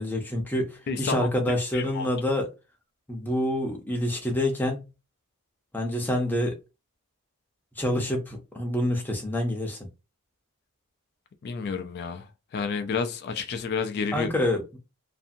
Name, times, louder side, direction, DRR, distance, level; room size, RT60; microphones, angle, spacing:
voice 1, 0.0-2.5 3.1-4.8 5.7-6.6 7.8-9.8 14.1-14.8, left 1 dB, 10° left, 0.7 m, -27 dB
voice 2, 0.9-1.3 1.7-2.1 11.4-12.3 12.5-14.3, left 5 dB, 45° left, 0.3 m, -30 dB
2.6 x 2.5 x 2.6 m
head